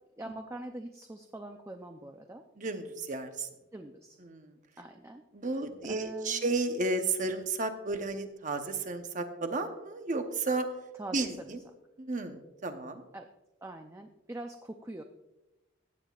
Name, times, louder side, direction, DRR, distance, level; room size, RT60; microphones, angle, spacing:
voice 1, 0.2-2.4 3.7-4.2 4.8-5.2 5.9-6.5 11.0-11.5 13.1-13.3 13.6-15.0, right 1 dB, 15° right, 5 dB, 0.5 m, -43 dB
voice 2, 2.6-3.5 4.2-4.6 5.3-10.7 11.1-11.6 12.0-13.0, right 3 dB, 40° right, 7 dB, 0.9 m, -33 dB
16.0 x 9.2 x 2.4 m, 0.99 s
head